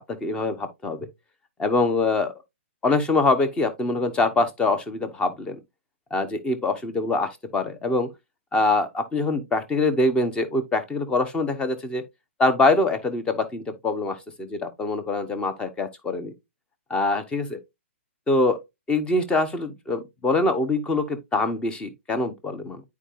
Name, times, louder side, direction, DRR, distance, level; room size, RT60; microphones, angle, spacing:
voice 1, 0.1-1.1 1.6-2.3 2.8-5.6 6.1-8.1 8.5-12.0 12.4-16.3 16.9-17.6 18.3-18.6 18.9-22.8, left 2 dB, 15° left, 1.0 m, -24 dB
9.8 x 4.7 x 2.5 m
hypercardioid pair, 140°, 7 cm